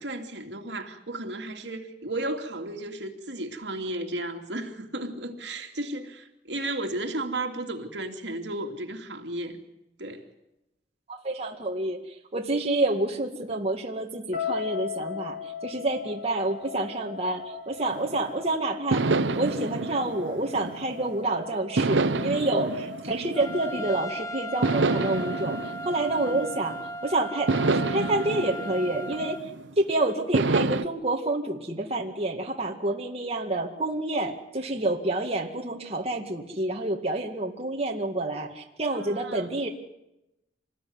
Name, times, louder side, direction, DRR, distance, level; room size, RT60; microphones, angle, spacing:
voice 1, 0.0-9.6 10.0-10.2 39.1-39.5, right 1 dB, 70° right, 4 dB, 2.9 m, -34 dB
voice 2, 11.1-19.0 19.3-39.7, right 2 dB, 35° right, 1 dB, 2.1 m, -28 dB
sound 1, 14.3-26.5, left 6 dB, 45° left, 8.0 m, -39 dB
sound 2, 17.9-18.3 18.9-21.2 21.8-24.0 24.6-26.9 27.5-29.7 30.3-30.8, right 3 dB, 85° right, 0.9 m, -28 dB
Trumpet, 23.3-29.4, right 1 dB, 20° left, 0.9 m, -37 dB
26.5 x 20.0 x 9.7 m, 0.90 s
head